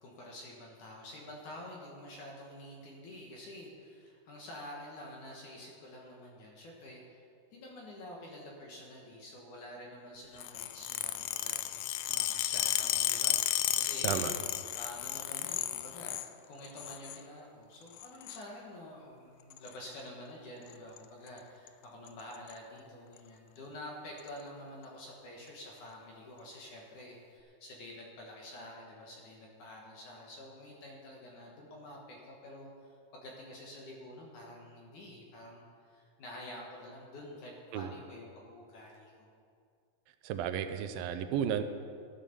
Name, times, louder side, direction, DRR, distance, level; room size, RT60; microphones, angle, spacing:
voice 1, 0.0-7.2 7.5-14.3 14.7-39.3, left 1 dB, 60° left, -2 dB, 2.6 m, -48 dB
sound 1, 10.4-16.3 16.6-17.2 17.9-18.4 19.5-19.7 20.7-21.0 21.3-21.4 21.7-21.8 22.1-22.5 23.2-23.3 24.2-24.3, left 14 dB, 90° left, 1.9 m, -33 dB
voice 2, 40.2-41.6, right 9 dB, 75° right, 8 dB, 2.4 m, -33 dB
13.5 x 9.1 x 6.8 m, 2.3 s
omnidirectional pair, 4.5 m